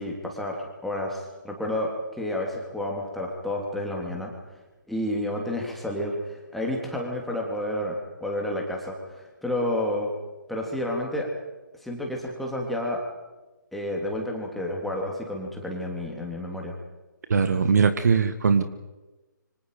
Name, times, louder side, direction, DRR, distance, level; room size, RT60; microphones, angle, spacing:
voice 1, 0.0-4.3 4.9-10.1 10.5-11.3 11.8-13.0 13.7-16.7, left 1 dB, ahead, -1 dB, 3.6 m, -30 dB
voice 2, 17.3-18.6, right 5 dB, 55° right, 10 dB, 1.7 m, -20 dB
27.5 x 25.0 x 5.2 m, 1.1 s
figure-of-eight pair, 140°, 11 cm